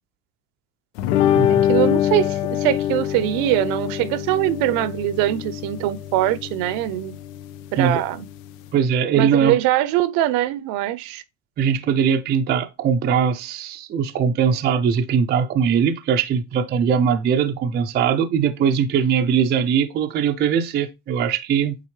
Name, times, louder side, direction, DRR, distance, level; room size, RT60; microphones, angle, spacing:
sound 1, 1.0-8.7, left 11 dB, 85° left, 0.7 m, -24 dB
voice 1, 1.5-7.1 7.7-8.3 9.2-11.2, right 13 dB, 60° right, 0.7 m, -22 dB
voice 2, 8.7-9.6 11.6-21.8, right 7 dB, 25° right, 0.5 m, -20 dB
8.6 x 3.6 x 3.1 m
cardioid pair, 140°, 38 cm